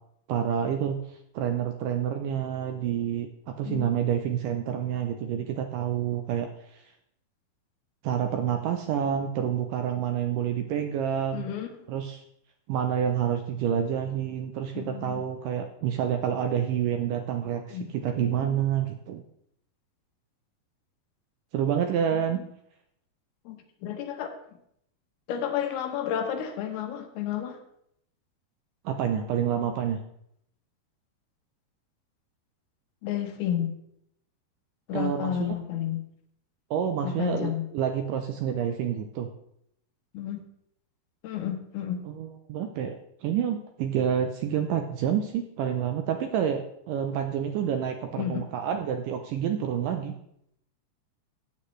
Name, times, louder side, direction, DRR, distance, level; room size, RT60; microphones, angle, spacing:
voice 1, 0.3-1.0 1.3-6.8 8.0-11.5 11.9-12.2 12.7-19.2 21.5-22.4 28.9-30.0 34.9-35.6 36.7-39.3 42.1-43.0 43.2-50.1, right 9 dB, 80° right, 6 dB, 2.0 m, -28 dB
voice 2, 3.6-4.1 11.3-11.7 14.7-15.2 17.7-17.9 18.2-18.6 22.1-22.4 23.5-23.6 23.8-24.3 25.3-27.6 33.0-33.7 34.9-36.0 37.0-37.7 40.1-40.4 41.2-42.0 48.2-48.4, left 10 dB, 85° left, 5 dB, 3.1 m, -31 dB
14.5 x 8.5 x 3.2 m, 0.74 s
omnidirectional pair, 4.4 m